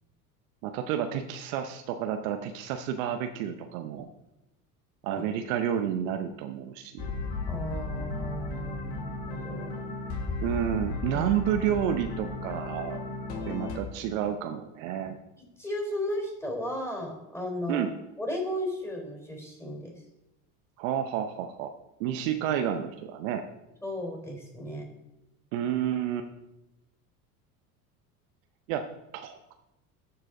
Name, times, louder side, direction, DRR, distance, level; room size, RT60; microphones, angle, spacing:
voice 1, 0.6-4.1 5.0-7.1 10.4-13.0 13.4-15.2 17.7-17.9 20.8-21.7 22.0-23.4 25.5-26.3 28.7-29.5, right 9 dB, 60° right, 7 dB, 0.8 m, -30 dB
sound 1, 7.0-13.8, left 3 dB, 55° left, 1.9 m, -35 dB
voice 2, 7.5-9.8 11.1-11.2 15.6-17.9 18.2-19.9 23.8-24.9, left 1 dB, 5° left, 1 dB, 3.5 m, -35 dB
13.5 x 4.9 x 3.8 m, 0.92 s
hypercardioid pair, 75°, 45 cm